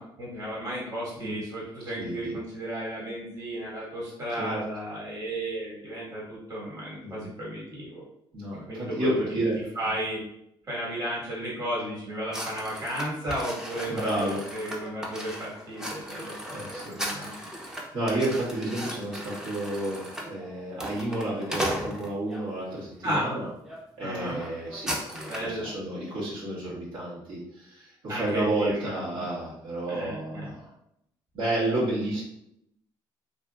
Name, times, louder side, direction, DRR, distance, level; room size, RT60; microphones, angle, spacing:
voice 1, 0.0-8.0 8.7-9.1 9.7-10.2 10.7-17.3 23.0-23.2 24.0-24.4 25.3-25.7 28.1-29.3 29.9-30.5, right 1 dB, 35° right, -7 dB, 1.4 m, -34 dB
voice 2, 2.0-2.3 4.3-4.6 7.0-7.2 8.3-9.5 9.8-9.9 13.9-14.4 16.5-16.9 17.6-23.5 24.0-30.7 31.3-32.2, right 1 dB, 75° right, -8 dB, 1.3 m, -31 dB
sound 1, 12.3-22.4 23.1-23.3 23.6-23.8 24.1-25.6, equal, 5° right, 0.5 m, -36 dB
2.6 x 2.6 x 2.3 m, 0.79 s
cardioid pair, 105°, 9 cm